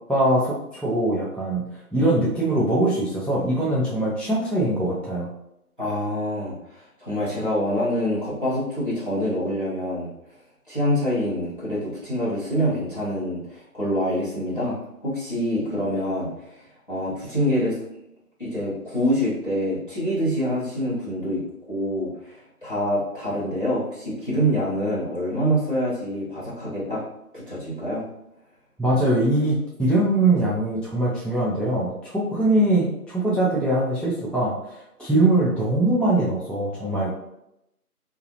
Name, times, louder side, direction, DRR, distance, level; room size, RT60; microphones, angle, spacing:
voice 1, 0.1-1.6 1.9-5.3 28.8-37.1, right 1 dB, 5° left, -8 dB, 0.3 m, -22 dB
voice 2, 5.8-10.1 10.7-14.8 15.0-17.8 18.4-21.4 21.7-27.0 27.3-28.1, equal, 35° left, -9 dB, 0.9 m, -26 dB
2.3 x 2.0 x 2.8 m, 0.83 s
figure-of-eight pair, 175°, 46 cm